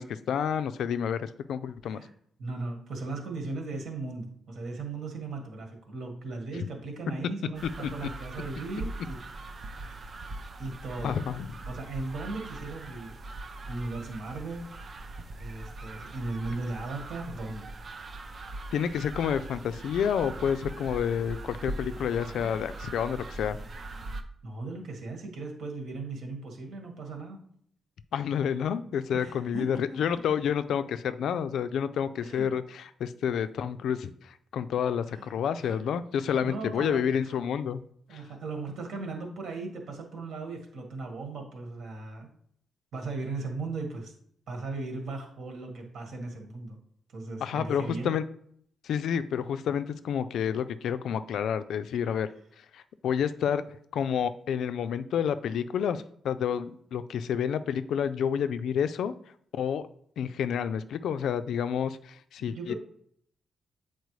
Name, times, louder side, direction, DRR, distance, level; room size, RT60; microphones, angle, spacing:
voice 1, 0.0-2.0 6.5-6.7 7.8-7.9 11.0-11.5 18.7-23.6 28.1-37.8 38.1-38.2 47.4-48.2 48.8-52.3 52.7-53.6 53.9-59.1 59.5-59.9 60.2-62.7, left 8 dB, 75° left, 13 dB, 0.3 m, -29 dB
voice 2, 2.4-9.2 9.6-10.0 10.6-11.2 11.7-13.1 13.7-14.6 15.4-17.7 22.2-22.5 24.4-27.4 29.1-30.0 32.2-32.5 35.1-35.3 35.6-35.8 36.1-37.3 38.1-42.3 42.9-44.1 44.5-46.8 47.1-48.1 62.4-62.7, right 3 dB, 60° right, 2 dB, 1.6 m, -37 dB
sound 1, 7.5-24.2, right 2 dB, 35° right, 0.5 m, -41 dB
8.1 x 4.3 x 3.2 m, 0.64 s
wide cardioid pair, 175°, 0 cm